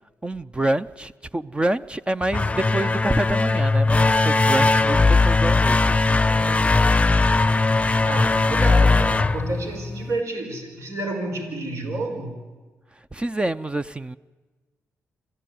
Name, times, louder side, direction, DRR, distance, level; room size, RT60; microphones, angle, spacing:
voice 1, 0.2-6.2 7.2-7.5 13.1-14.2, right 1 dB, 20° right, 0.7 m, -27 dB
sound 1, 2.2-10.2, left 3 dB, 20° left, 0.7 m, -19 dB
voice 2, 6.0-7.4 7.8-12.4, right 2 dB, 65° right, 5.1 m, -31 dB
26.0 x 14.5 x 9.5 m
supercardioid pair, 55°, 6 cm